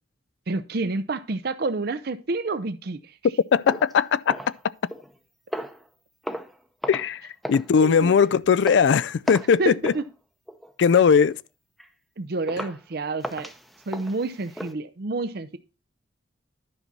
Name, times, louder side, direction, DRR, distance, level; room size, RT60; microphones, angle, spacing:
voice 1, 0.5-3.1 7.8-8.1 9.6-10.0 12.2-13.5 13.9-15.6, right 3 dB, 55° right, 0.6 m, -29 dB
voice 2, 3.5-4.4 6.9-9.9 10.8-11.3, left 6 dB, 65° left, 0.3 m, -19 dB
sound 1, 3.7-5.2 5.5-5.9 6.2-6.6 6.8-7.2 7.4-7.7 8.0-8.3 8.7-8.9 9.3-9.6 9.8-10.1 10.5-10.7 11.2-11.3 11.8-11.9 12.5-12.8 13.2-14.7, equal, ahead, 0.7 m, -35 dB
11.0 x 5.9 x 4.0 m
head